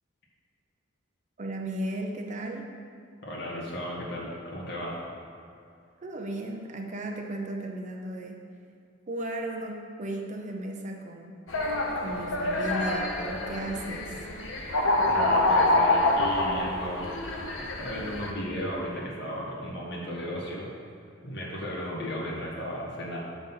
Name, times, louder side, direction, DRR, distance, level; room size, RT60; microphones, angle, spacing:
voice 1, 1.4-2.7 6.0-8.4 9.1-11.4 12.0-14.2, right 1 dB, 40° right, 2 dB, 0.6 m, -35 dB
voice 2, 3.2-5.1 15.1-17.1 17.8-20.7 21.2-23.2, equal, 60° left, -5 dB, 1.7 m, -35 dB
sound 1, 11.5-18.3, left 2 dB, 75° left, 0.8 m, -26 dB
7.6 x 4.0 x 5.6 m, 2.4 s
head